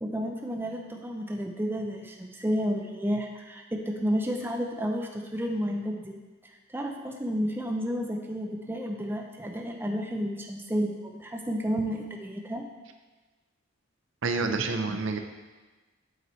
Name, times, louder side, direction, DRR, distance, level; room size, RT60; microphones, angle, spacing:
voice 1, 0.0-6.2 6.4-12.7, equal, 10° right, 2 dB, 0.5 m, -31 dB
voice 2, 14.2-15.2, right 3 dB, 70° right, 6 dB, 0.6 m, -28 dB
7.8 x 7.7 x 3.1 m, 1.3 s
head